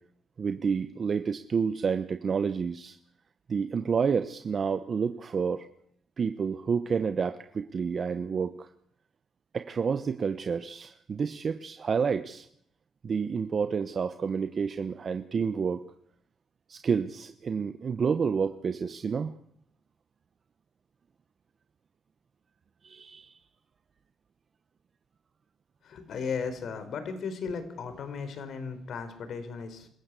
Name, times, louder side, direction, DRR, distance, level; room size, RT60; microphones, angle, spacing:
voice 1, 0.4-3.0 3.5-5.7 6.2-8.7 9.5-12.5 13.0-15.8 16.7-19.3 22.8-23.3, right 6 dB, 45° right, 10 dB, 1.0 m, -29 dB
voice 2, 25.8-29.9, left 5 dB, 65° left, 10 dB, 4.3 m, -36 dB
26.5 x 15.5 x 8.3 m, 0.66 s
cardioid pair, 90°, 0 cm